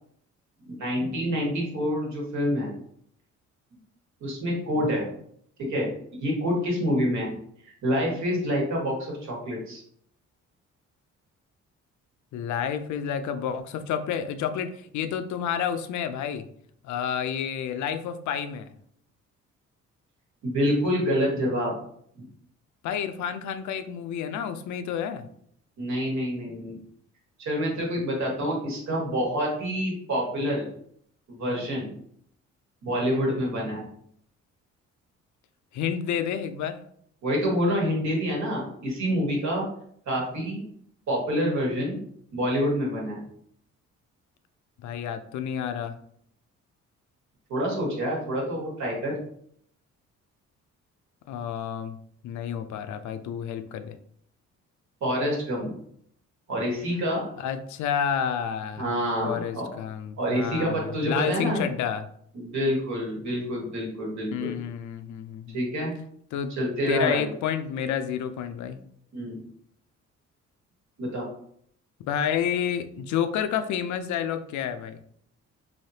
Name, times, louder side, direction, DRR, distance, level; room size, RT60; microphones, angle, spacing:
voice 1, 0.6-2.7 4.2-5.1 5.7-5.9 6.2-7.3 7.6-9.8 20.4-21.8 22.1-22.2 25.8-26.8 27.4-30.7 31.4-31.9 32.8-33.8 37.2-39.7 40.1-40.6 41.1-42.0 42.3-43.2 47.5-49.2 55.0-55.7 56.5-57.2 58.8-59.8 60.2-61.6 62.3-64.5 65.5-65.9 66.5-67.3 69.1-69.4 71.0-71.3, equal, 65° right, -2 dB, 1.5 m, -27 dB
voice 2, 12.3-16.5 16.8-18.7 22.8-25.2 35.7-36.8 44.8-45.9 51.3-51.9 52.2-53.9 57.4-58.9 59.2-62.1 64.3-65.6 66.3-66.5 66.9-68.8 72.0-75.0, left 8 dB, 70° left, 9 dB, 0.4 m, -30 dB
3.2 x 2.7 x 2.7 m, 0.67 s
cardioid pair, 90°, 30 cm